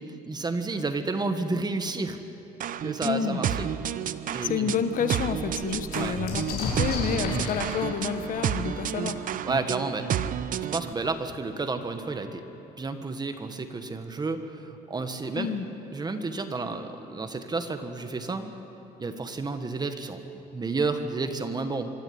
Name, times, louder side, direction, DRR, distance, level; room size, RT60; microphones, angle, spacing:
voice 1, 0.2-2.2 2.8-3.7 4.3-4.8 5.9-6.2 9.4-10.1 10.7-12.4 12.8-15.5 15.9-18.6 19.0-20.2 20.5-21.9, right 3 dB, 25° right, 8 dB, 1.6 m, -31 dB
sound 1, 2.6-10.9, right 9 dB, 55° right, 0.7 m, -31 dB
voice 2, 3.0-3.4 4.4-9.2 15.4-15.7, left 7 dB, 50° left, 9 dB, 1.3 m, -29 dB
sound 2, 3.9-4.0 4.4-4.5 4.8-10.3 11.3-11.4 11.6-12.3, left 4 dB, 70° left, 6.5 m, -37 dB
25.5 x 13.0 x 9.8 m, 3.0 s
cardioid pair, 110°, 17 cm